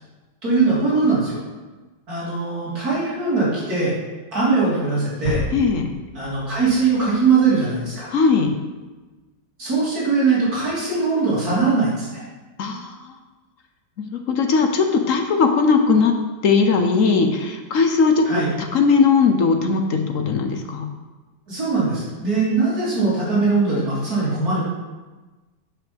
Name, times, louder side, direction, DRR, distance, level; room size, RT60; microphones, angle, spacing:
voice 1, 0.4-1.4 2.1-4.0 4.3-5.4 6.1-8.1 9.6-12.2 18.2-18.5 21.5-24.6, right 4 dB, 55° right, -9 dB, 3.7 m, -21 dB
sound 1, 5.3-7.1 7.4-7.5, left 1 dB, 85° right, 2.6 m, -31 dB
voice 2, 5.5-5.9 8.1-8.5 12.6-12.9 14.0-16.1 16.4-20.8, left 5 dB, 55° left, 5 dB, 1.0 m, -19 dB
8.7 x 6.0 x 5.2 m, 1.2 s
omnidirectional pair, 1.9 m